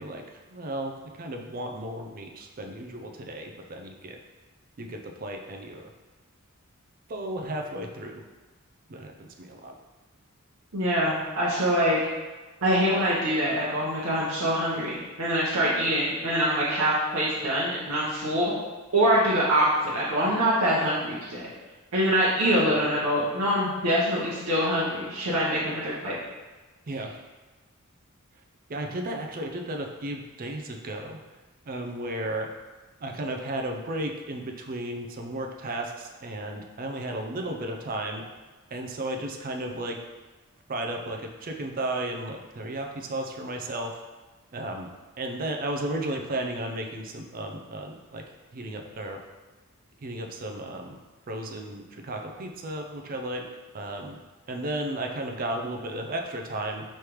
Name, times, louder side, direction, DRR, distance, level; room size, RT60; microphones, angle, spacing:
voice 1, 0.0-4.2 4.8-5.9 7.1-8.2 8.9-9.7 26.9-27.2 28.7-31.2 31.7-32.5 33.0-38.3 38.7-40.0 40.7-44.0 44.5-44.9 45.2-48.2 48.5-49.2 50.0-51.0 51.3-53.4 53.7-54.2 54.5-56.8, right 1 dB, 40° right, 3 dB, 0.4 m, -34 dB
voice 2, 10.7-12.0 12.6-18.5 18.9-19.7 19.9-21.5 21.9-26.2, equal, 90° right, -8 dB, 0.9 m, -24 dB
4.9 x 3.2 x 3.0 m, 1.3 s
head